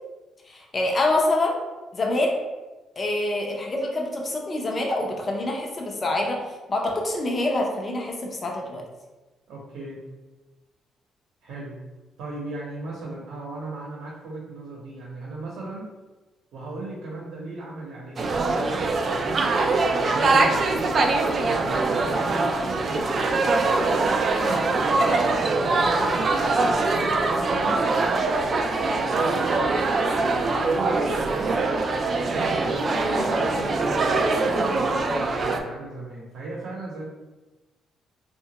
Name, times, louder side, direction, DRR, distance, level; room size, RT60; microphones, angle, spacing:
voice 1, 0.5-1.6 1.9-2.4 3.0-6.4 6.7-8.8 24.3-24.6 33.0-33.3, left 2 dB, 35° left, 0 dB, 0.6 m, -26 dB
voice 2, 9.5-10.0 11.4-11.8 12.2-15.9 16.5-23.1 24.4-27.9 28.4-31.8 32.6-37.0, right 2 dB, 80° right, -4 dB, 0.7 m, -37 dB
sound 1, 18.2-35.6, right 3 dB, 45° right, 0.3 m, -23 dB
2.8 x 2.3 x 2.8 m, 1.2 s
cardioid pair, 90°, 0 cm